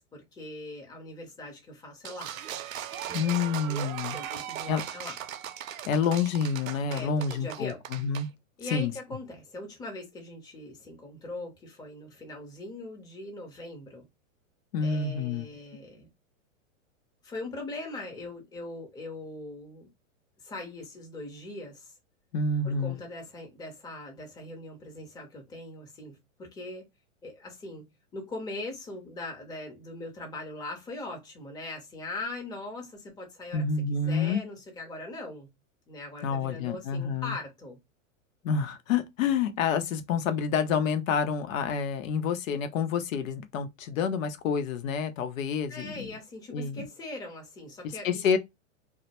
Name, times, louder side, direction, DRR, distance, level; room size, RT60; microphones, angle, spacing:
voice 1, 0.0-2.3 3.1-3.3 4.0-5.2 6.9-7.8 8.6-14.0 14.8-16.1 17.2-19.9 20.4-21.9 22.6-26.8 27.2-27.8 28.1-33.6 33.9-35.5 35.9-37.8 45.7-48.2, left 2 dB, 10° left, 0.6 m, -41 dB
sound 1, 2.0-8.3, right 10 dB, 80° right, 0.6 m, -38 dB
voice 2, 3.1-4.2 4.7-4.8 5.9-8.3 8.7-8.9 14.7-15.5 22.3-23.0 33.5-34.4 36.2-37.4 38.4-46.1 46.5-46.8 48.0-48.4, left 5 dB, 75° left, 0.6 m, -28 dB
2.1 x 2.1 x 2.8 m
hypercardioid pair, 135°, 40 cm